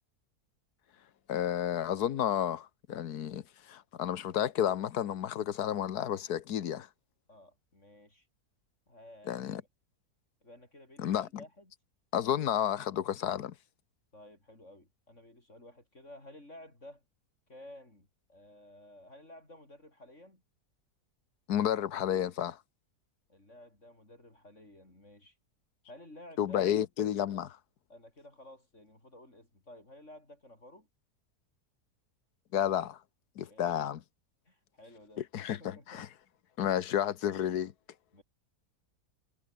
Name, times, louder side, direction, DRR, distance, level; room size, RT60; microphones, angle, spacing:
voice 1, 1.3-3.4 3.7-6.9 9.3-9.6 11.0-11.3 12.1-13.5 21.5-22.6 26.4-27.6 32.5-33.0 33.4-34.0 35.3-36.1 36.6-37.7, left 10 dB, 80° left, 1.6 m, -31 dB
voice 2, 7.3-8.3 8.9-9.7 10.4-11.7 14.1-17.0 17.5-20.4 23.3-25.4 25.9-26.7 27.9-30.9 33.4-33.8 34.5-36.0 38.1-38.2, left 1 dB, 50° left, 7.6 m, -53 dB
omnidirectional pair, 1.7 m